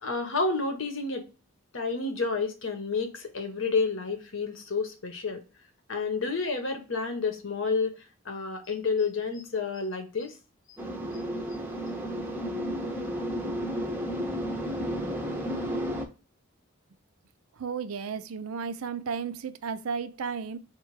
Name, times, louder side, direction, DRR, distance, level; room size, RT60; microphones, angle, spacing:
voice 1, 0.0-1.3 1.7-5.4 5.9-8.0 8.2-10.4, left 4 dB, 65° left, 0.8 m, -30 dB
sound 1, 10.8-16.1, equal, 10° right, 0.5 m, -32 dB
voice 2, 17.6-20.6, right 6 dB, 85° right, 0.5 m, -33 dB
4.3 x 2.2 x 4.6 m
head